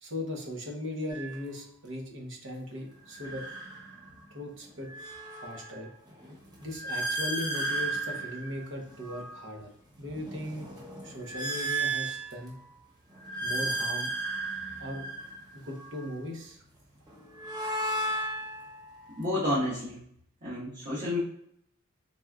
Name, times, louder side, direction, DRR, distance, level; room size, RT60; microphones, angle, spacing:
voice 1, 0.0-3.4 4.3-4.9 5.3-5.9 6.6-9.7 10.0-10.7 11.0-12.6 13.4-14.1 14.8-15.0 15.5-16.6, left 1 dB, 65° right, 0 dB, 0.9 m, -38 dB
sound 1, 1.1-1.3 3.0-4.2 4.6-9.5 10.0-12.7 13.1-16.1 17.1-19.3, right 2 dB, 20° right, 0.7 m, -35 dB
voice 2, 19.2-20.0 20.4-21.2, left 1 dB, 40° right, -12 dB, 1.4 m, -30 dB
4.0 x 3.5 x 2.4 m, 0.71 s
head